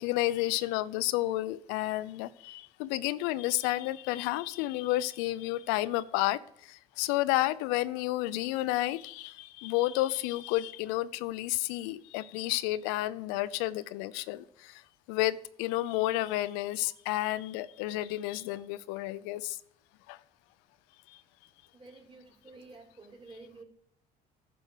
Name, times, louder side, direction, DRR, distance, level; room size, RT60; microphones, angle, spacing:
voice 1, 0.0-14.8 15.1-19.6 20.1-20.2 21.1-21.2, left 16 dB, 85° left, 0.4 m, -31 dB
voice 2, 21.7-23.6, right 3 dB, 25° right, 3.2 m, -51 dB
10.5 x 6.2 x 4.9 m
supercardioid pair, 85°, 19 cm